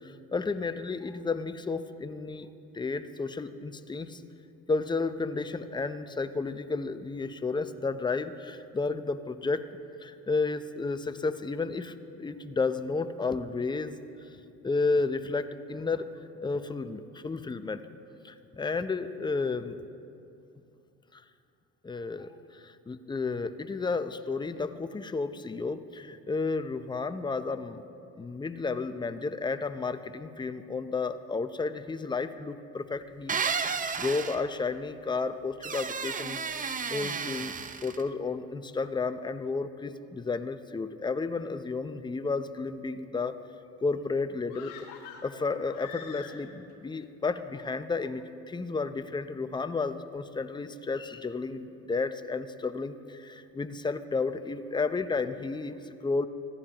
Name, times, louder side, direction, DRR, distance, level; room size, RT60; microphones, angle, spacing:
voice 1, 0.0-2.5 2.7-4.2 4.7-9.7 10.0-14.0 14.6-16.1 16.4-17.8 18.2-19.8 21.1-21.2 21.8-27.8 28.2-33.4 34.0-37.5 37.8-43.4 43.8-44.7 45.2-56.3, left 4 dB, 15° left, 10 dB, 0.7 m, -32 dB
cupboard door wood open close creak fast and slow many, 33.3-34.4 35.6-38.0, right 5 dB, 25° right, 0.7 m, -32 dB
sound 1, 44.5-46.7 47.0-47.1, left 8 dB, 75° left, 1.5 m, -46 dB
25.0 x 15.0 x 3.0 m, 2.7 s
supercardioid pair, 95°, 31 cm